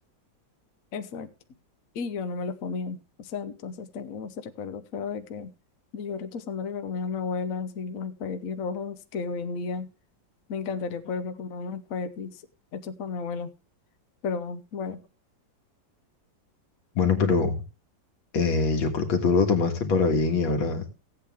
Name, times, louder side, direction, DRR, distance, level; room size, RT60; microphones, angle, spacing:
voice 1, 0.9-1.3 1.9-5.5 5.9-9.9 10.5-12.4 12.7-13.5 14.2-15.0, left 5 dB, 55° left, 9 dB, 1.1 m, -33 dB
voice 2, 17.0-17.5 18.3-20.8, left 4 dB, 85° left, 4 dB, 2.5 m, -23 dB
15.5 x 8.5 x 3.5 m, 0.31 s
omnidirectional pair, 2.1 m